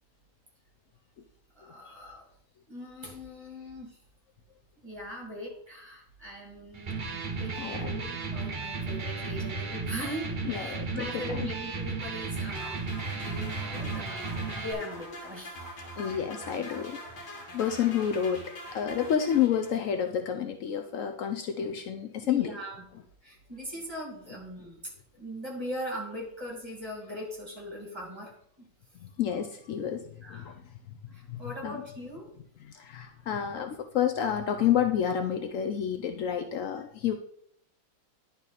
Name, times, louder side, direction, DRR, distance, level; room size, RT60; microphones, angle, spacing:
voice 1, 1.5-2.2 2.7-4.0 4.8-12.8 13.1-15.6 16.0-16.2 17.3-17.9 22.2-22.9 23.2-24.8 25.1-28.3 28.6-28.7 30.2-30.5 31.1-32.3, equal, 15° right, -2 dB, 2.2 m, -40 dB
Electric guitar, 6.7-14.7, right 4 dB, 40° right, 0.7 m, -34 dB
voice 2, 7.6-7.9 10.5-11.5 16.0-17.0 17.5-18.4 18.7-22.5 29.0-30.0 30.3-30.6 31.3-31.8 32.7-37.1, left 9 dB, 90° left, 5 dB, 0.7 m, -29 dB
sound 1, 12.3-20.1, left 1 dB, 60° left, 2.1 m, -44 dB
10.5 x 3.9 x 4.1 m, 0.66 s
omnidirectional pair, 2.0 m